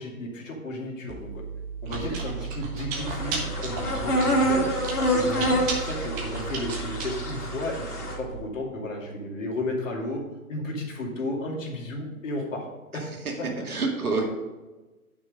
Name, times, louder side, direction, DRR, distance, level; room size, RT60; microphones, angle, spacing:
voice 1, 0.0-1.4 1.8-4.7 5.1-7.9 8.2-10.2 10.5-12.7 12.9-13.1, left 1 dB, 55° left, 0 dB, 2.6 m, -33 dB
Chewing mastication, 1.1-8.3, right 5 dB, 20° right, 1.3 m, -34 dB
voice 2, 1.9-2.2 5.3-5.8 12.9-14.3, right 3 dB, 70° right, 1 dB, 2.4 m, -31 dB
sound 1, 2.9-8.2, equal, 90° left, 2.8 m, -27 dB
9.5 x 6.1 x 5.1 m, 1.2 s
figure-of-eight pair, 140°, 44 cm